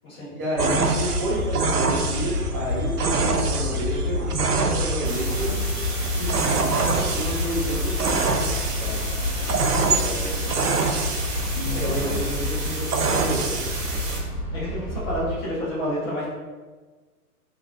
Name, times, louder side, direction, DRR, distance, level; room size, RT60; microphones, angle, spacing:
voice 1, 0.4-5.6 6.1-6.8 7.1-8.2 8.8-9.1 9.9-10.6 11.5-13.6, right 1 dB, 20° right, -8 dB, 0.9 m, -30 dB
sound 1, 0.6-15.4, left 2 dB, 60° left, 0.6 m, -29 dB
sound 2, 0.6-14.2, right 4 dB, 75° right, 0.5 m, -27 dB
sound 3, 5.0-14.2, right 2 dB, 55° right, 1.1 m, -33 dB
voice 2, 14.5-16.2, equal, 15° left, -8 dB, 0.7 m, -29 dB
3.6 x 2.5 x 2.3 m, 1.4 s
figure-of-eight pair, 120°, 47 cm